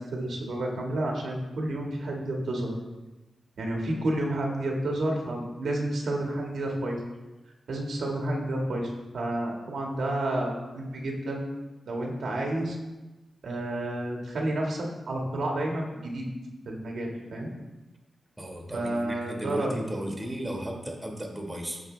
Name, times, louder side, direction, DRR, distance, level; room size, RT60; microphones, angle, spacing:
voice 1, 0.0-2.7 3.6-7.0 7.7-11.4 11.8-12.8 13.4-16.3 16.6-17.5 18.7-19.8, right 1 dB, 80° right, 0 dB, 1.7 m, -30 dB
voice 2, 18.4-21.8, right 1 dB, 15° right, 0 dB, 1.6 m, -35 dB
15.0 x 5.0 x 3.3 m, 1.1 s
wide cardioid pair, 120°, 0 cm